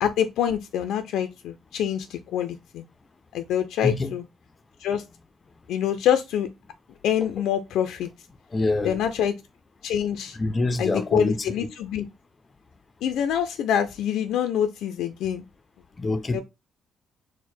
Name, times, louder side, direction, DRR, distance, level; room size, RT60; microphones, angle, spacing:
voice 1, 0.0-2.9 3.3-4.2 4.8-5.0 5.7-6.5 7.0-8.1 8.8-9.3 9.8-10.4 10.8-12.1 13.0-15.4 16.3-16.4, left 9 dB, 90° left, 0.4 m, -25 dB
voice 2, 8.5-9.0 10.3-11.5 16.0-16.4, left 2 dB, 25° left, 0.4 m, -25 dB
4.6 x 2.1 x 4.3 m
cardioid pair, 135°, 0 cm